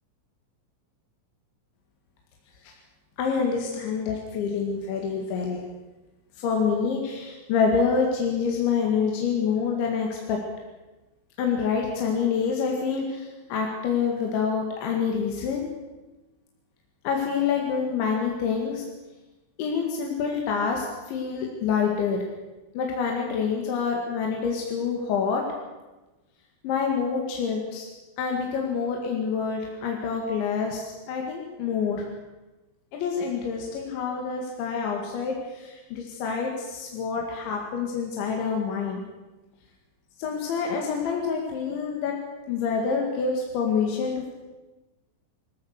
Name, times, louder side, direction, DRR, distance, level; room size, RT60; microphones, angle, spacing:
voice 1, 3.2-5.6 6.4-10.4 11.4-15.7 17.0-18.9 19.6-22.2 22.7-25.4 26.6-27.9 28.2-32.1 32.9-39.0 40.2-42.1 42.5-44.3, left 6 dB, 70° left, 0 dB, 4.4 m, -27 dB
27.0 x 14.5 x 6.7 m, 1.1 s
omnidirectional pair, 5.7 m